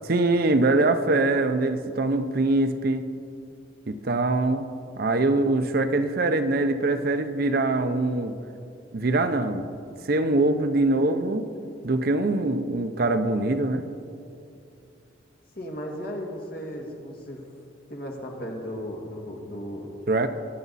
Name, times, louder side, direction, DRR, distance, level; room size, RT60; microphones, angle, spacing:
voice 1, 0.1-3.0 3.9-4.7 5.0-8.4 8.9-9.7 10.1-11.5 11.8-13.8 20.1-20.3, right 2 dB, 50° right, 9 dB, 0.6 m, -23 dB
voice 2, 15.6-17.4 17.9-20.0, equal, 50° left, 0 dB, 1.9 m, -35 dB
21.5 x 8.3 x 4.1 m, 2.5 s
head